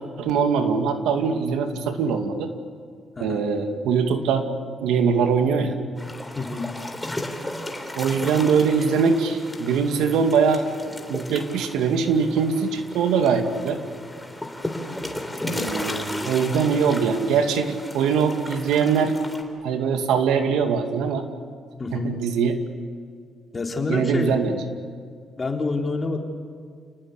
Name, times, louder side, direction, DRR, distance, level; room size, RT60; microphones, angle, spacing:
voice 1, 0.2-2.5 3.2-4.5 4.8-5.7 8.0-10.7 11.1-13.8 15.5-19.2 19.6-21.2 21.9-22.6 23.9-24.6, right 6 dB, 90° right, 6 dB, 2.3 m, -22 dB
voice 2, 3.2-3.5 6.4-6.8 21.8-22.2 23.5-24.4 25.4-26.2, left 3 dB, 30° left, 2 dB, 3.7 m, -28 dB
sound 1, 6.0-19.4, left 1 dB, 10° left, 3.7 m, -35 dB
29.0 x 19.0 x 8.4 m, 2.1 s
cardioid pair, 90°, 0 cm